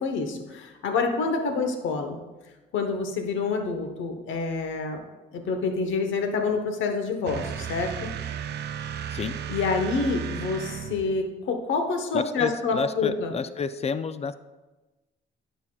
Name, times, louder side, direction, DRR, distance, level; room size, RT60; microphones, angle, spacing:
voice 1, 0.0-2.2 2.7-5.0 5.3-8.1 9.5-13.3, left 4 dB, 75° left, 5 dB, 1.0 m, -27 dB
sound 1, 7.3-11.2, right 8 dB, 60° right, 0.5 m, -34 dB
voice 2, 12.1-14.4, left 6 dB, 35° left, 12 dB, 0.4 m, -30 dB
10.5 x 5.7 x 2.3 m, 1.1 s
cardioid pair, 90°, 20 cm